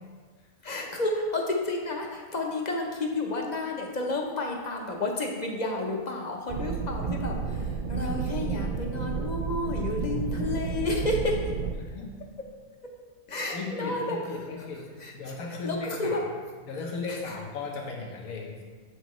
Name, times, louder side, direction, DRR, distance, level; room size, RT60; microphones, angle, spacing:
voice 1, 0.6-7.6 7.9-11.4 13.3-14.2 15.0-15.1 15.6-16.2 17.1-17.2, left 2 dB, 40° left, 1 dB, 0.6 m, -31 dB
sound 1, 6.5-11.7, right 5 dB, 80° right, 0.4 m, -31 dB
voice 2, 11.7-12.2 13.5-16.3 16.7-18.6, left 3 dB, 75° left, 0 dB, 1.4 m, -36 dB
8.0 x 6.4 x 3.1 m, 1.5 s
omnidirectional pair, 1.5 m